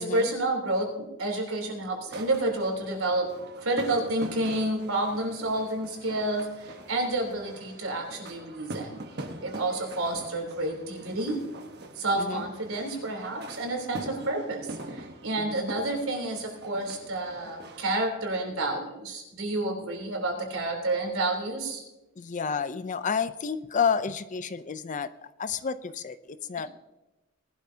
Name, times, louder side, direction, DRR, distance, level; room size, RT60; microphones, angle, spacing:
voice 1, 0.0-9.0 9.4-11.5 12.0-21.8, right 2 dB, 85° right, 1 dB, 3.5 m, -30 dB
sound 1, 2.1-17.9, right 1 dB, 50° right, 1.1 m, -44 dB
voice 2, 22.2-26.7, left 6 dB, 35° left, 13 dB, 0.5 m, -30 dB
19.5 x 12.0 x 2.8 m, 1.0 s
head